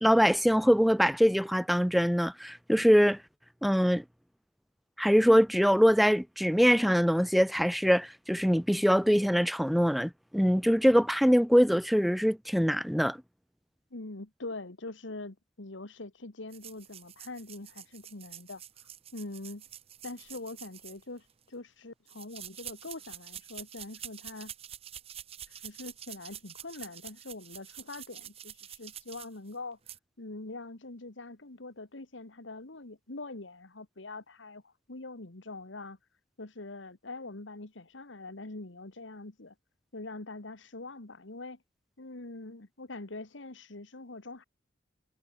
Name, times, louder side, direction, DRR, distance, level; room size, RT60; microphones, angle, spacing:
voice 1, 0.0-3.2 3.6-4.0 5.0-13.2, equal, ahead, 0.4 m, -23 dB
voice 2, 13.9-19.6 20.0-24.5 25.5-29.8 30.2-36.0 36.4-39.6 39.9-41.6 42.0-44.4, left 2 dB, 75° left, 1.7 m, -43 dB
sound 1, 16.5-21.4 22.1-29.5 29.8-30.0, right 11 dB, 30° right, 0.7 m, -47 dB
head